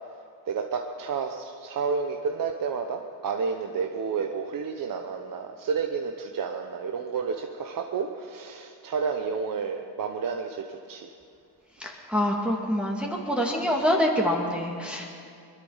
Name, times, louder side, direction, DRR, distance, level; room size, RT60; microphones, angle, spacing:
voice 1, 0.5-11.1, right 5 dB, 45° right, 3 dB, 1.0 m, -30 dB
voice 2, 11.8-15.1, equal, ahead, -2 dB, 2.1 m, -26 dB
21.5 x 12.0 x 5.7 m, 2.3 s
cardioid pair, 105°, 45 cm